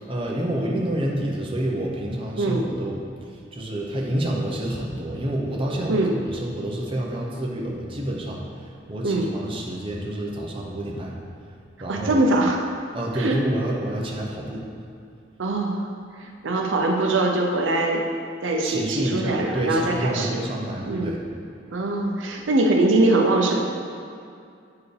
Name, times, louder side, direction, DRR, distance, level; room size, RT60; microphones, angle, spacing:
voice 1, 0.1-3.0 3.3-11.1 11.8-12.2 12.9-14.6 18.6-21.2, right 1 dB, 30° right, -3 dB, 0.8 m, -28 dB
voice 2, 11.9-12.6 13.1-13.4 15.4-15.9 16.2-18.0 18.4-20.4 20.8-21.2 21.7-23.7, right 2 dB, 80° right, 1 dB, 0.6 m, -22 dB
9.4 x 4.7 x 3.3 m, 2.4 s
head